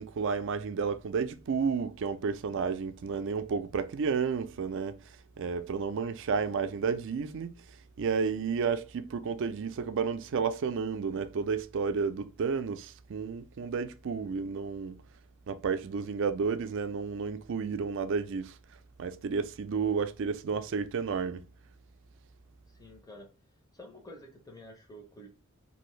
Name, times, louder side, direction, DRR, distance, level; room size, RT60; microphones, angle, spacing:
voice 1, 0.0-5.0 5.4-7.5 8.0-15.0 15.5-18.6 19.0-21.4, right 5 dB, 55° right, 0.4 m, -31 dB
voice 2, 22.8-23.3 23.7-25.3, equal, 15° left, 0.7 m, -49 dB
2.7 x 2.6 x 3.1 m
head